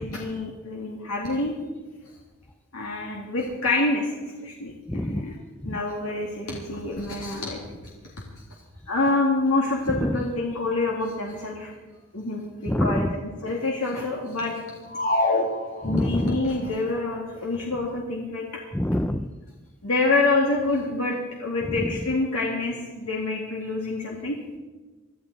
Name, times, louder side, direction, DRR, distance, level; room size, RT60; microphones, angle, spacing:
voice 1, 0.0-1.5 2.7-4.1 4.4-5.3 5.6-7.6 8.9-11.7 12.1-14.5 15.8-18.5 19.8-24.4, left 2 dB, 85° left, -2 dB, 2.1 m, -27 dB
voice 2, 4.9-5.3 5.7-5.8 10.0-10.1 12.7-13.1 15.8-16.4 18.7-19.2, left 1 dB, 5° left, 7 dB, 0.4 m, -25 dB
sound 1, 14.9-16.4, left 2 dB, 40° left, 1.5 m, -25 dB
22.0 x 13.0 x 4.0 m, 1.2 s
head